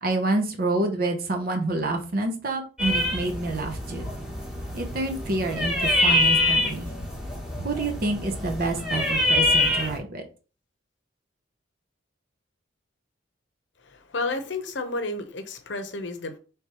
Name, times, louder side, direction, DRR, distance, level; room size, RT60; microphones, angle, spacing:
voice 1, 0.0-4.1 4.7-6.9 7.6-10.2, right 2 dB, 50° right, 0.7 m, -28 dB
sound 1, 2.8-10.0, left 1 dB, 5° right, 1.1 m, -25 dB
voice 2, 13.8-16.4, left 2 dB, 70° left, 0.7 m, -31 dB
4.6 x 3.4 x 2.9 m
head